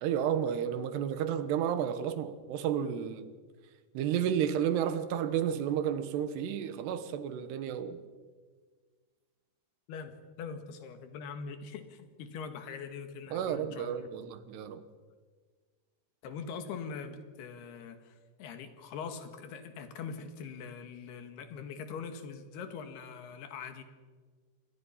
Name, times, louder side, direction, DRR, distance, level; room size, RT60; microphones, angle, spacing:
voice 1, 0.0-3.3 4.0-8.0 13.3-14.8, right 9 dB, 85° right, 3.3 m, -31 dB
voice 2, 9.9-14.1 16.2-23.8, left 6 dB, 75° left, 3.7 m, -42 dB
28.5 x 22.0 x 5.7 m
omnidirectional pair, 4.7 m